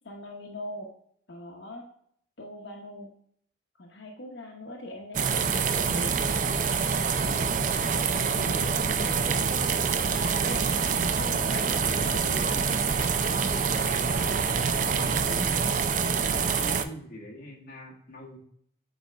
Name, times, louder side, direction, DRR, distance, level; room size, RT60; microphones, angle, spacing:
voice 1, 0.0-0.9 1.3-1.8 2.4-3.1 3.8-6.3, left 1 dB, 80° left, 0 dB, 0.9 m, -41 dB
sound 1, 5.1-16.8, right 5 dB, 45° right, 0.4 m, -26 dB
voice 2, 7.2-7.7 8.2-12.7 13.2-15.7 16.2-18.4, equal, 50° left, -3 dB, 1.6 m, -42 dB
8.0 x 4.1 x 3.3 m, 0.64 s
head